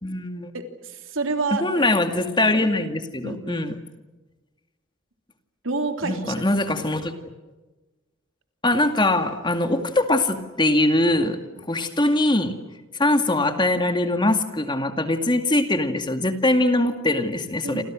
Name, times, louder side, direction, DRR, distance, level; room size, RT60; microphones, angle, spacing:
voice 1, 0.0-0.5 1.5-3.7 6.0-7.1 8.6-11.4 11.7-12.5 13.0-17.8, left 1 dB, 25° left, 7 dB, 2.2 m, -22 dB
voice 2, 0.5-1.9 2.4-2.5 3.2-3.6 5.6-6.4 17.6-17.8, right 3 dB, 75° right, 6 dB, 3.3 m, -29 dB
29.0 x 27.5 x 6.3 m, 1.2 s
head